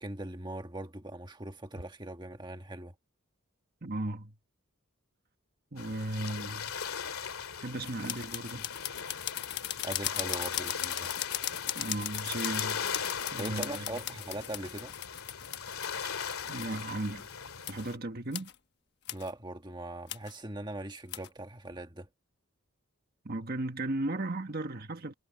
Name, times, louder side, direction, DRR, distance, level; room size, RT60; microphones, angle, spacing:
voice 1, 0.0-2.9 9.8-11.1 13.4-14.9 19.1-22.1, right 1 dB, 20° right, 1.5 m, -40 dB
voice 2, 3.8-4.3 5.7-6.7 7.6-8.7 11.7-12.8 13.3-13.9 16.5-17.3 17.7-18.5 23.2-25.1, right 2 dB, 45° right, 1.5 m, -36 dB
sound 1, 5.8-18.0, left 7 dB, 85° left, 2.4 m, -39 dB
sound 2, 7.8-17.3 17.6-17.9 18.3-18.6 19.1-19.3 20.1-20.4 21.1-21.3, left 12 dB, 50° left, 1.2 m, -38 dB
head